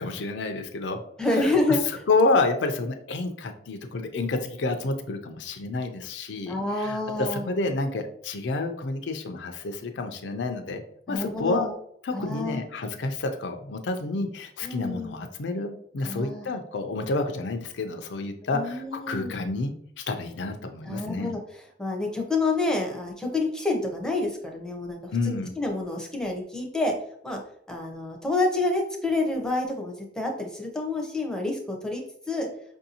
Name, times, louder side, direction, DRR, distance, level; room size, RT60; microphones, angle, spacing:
voice 1, 0.0-1.0 1.3-1.5 2.1-10.8 11.1-11.7 12.0-21.3 25.1-25.5, left 3 dB, 80° left, 6 dB, 0.5 m, -29 dB
voice 2, 1.2-1.8 6.5-7.5 11.1-11.7 12.1-12.6 14.6-15.1 16.0-16.5 18.5-19.4 20.9-21.4 21.8-25.0 25.2-26.9 27.2-27.4 27.7-32.5, left 2 dB, 5° left, 1 dB, 0.7 m, -28 dB
5.3 x 2.6 x 2.7 m, 0.67 s
head